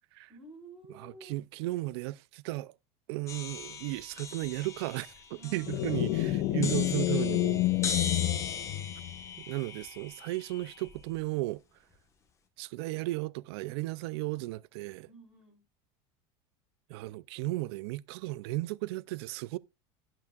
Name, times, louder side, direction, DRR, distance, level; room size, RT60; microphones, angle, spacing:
voice 1, 0.3-1.4 5.3-6.3 15.0-15.6, right 3 dB, 5° right, 4.1 m, -52 dB
voice 2, 0.9-2.7 3.1-7.6 9.4-11.6 12.6-15.1 16.9-19.6, right 19 dB, 70° right, 0.4 m, -35 dB
sound 1, 3.3-11.2, left 5 dB, 20° left, 1.2 m, -40 dB
sound 2, 5.7-9.3, left 15 dB, 50° left, 0.6 m, -29 dB
15.0 x 6.1 x 2.3 m
supercardioid pair, 150°, 14 cm